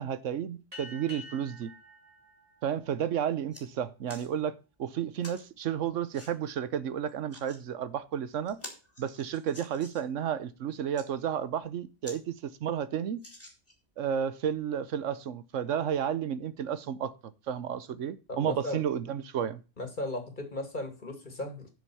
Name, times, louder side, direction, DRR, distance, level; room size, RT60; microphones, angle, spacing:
voice 1, 0.0-1.7 2.6-8.6 9.0-13.2 14.0-17.1 17.5-19.6, right 9 dB, 85° right, 1.1 m, -32 dB
sound 1, 0.7-3.7, left 2 dB, 30° right, 3.3 m, -49 dB
sound 2, 3.5-3.6 4.1-4.3 5.2-5.4 6.1-6.3 7.1-7.6 8.1-8.2 8.5-10.1 10.7-11.1 11.6-11.7 12.0-12.2 12.5-12.6 13.2-13.9 14.5-14.6, left 1 dB, 10° left, 3.0 m, -48 dB
voice 2, 18.3-18.8 19.8-21.7, left 1 dB, 40° left, 2.3 m, -36 dB
7.8 x 6.2 x 6.9 m
omnidirectional pair, 1.3 m